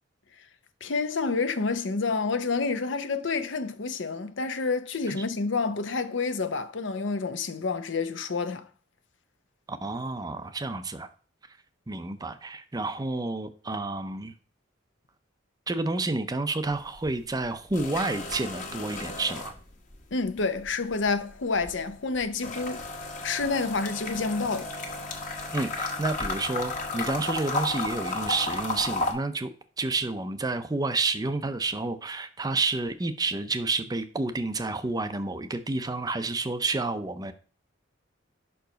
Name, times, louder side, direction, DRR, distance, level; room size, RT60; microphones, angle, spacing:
voice 1, 0.8-8.7 20.1-22.8 23.2-24.7, left 4 dB, 70° left, 0.7 m, -28 dB
voice 2, 9.7-11.1 11.9-14.3 15.7-19.5 25.5-29.5 29.8-37.3, right 3 dB, 20° right, 0.5 m, -30 dB
sound 1, 16.7-17.1 17.4-20.1 20.4-29.1, left 2 dB, 40° left, 1.3 m, -33 dB
5.9 x 4.7 x 5.1 m
head